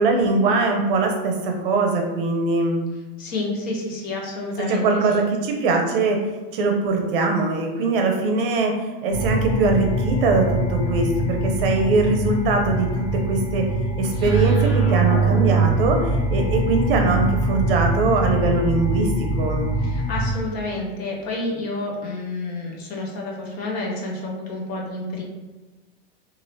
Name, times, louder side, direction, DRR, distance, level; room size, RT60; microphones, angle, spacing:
voice 1, 0.0-2.9 4.7-6.2 6.5-13.6 14.0-19.8, right 3 dB, 65° right, 2 dB, 0.6 m, -21 dB
voice 2, 3.2-5.2 19.8-25.2, left 2 dB, 30° left, -1 dB, 0.5 m, -29 dB
sound 1, 9.1-20.3, right 2 dB, 55° left, 1.0 m, -23 dB
2.7 x 2.5 x 3.1 m, 1.2 s
supercardioid pair, 160°, 30 cm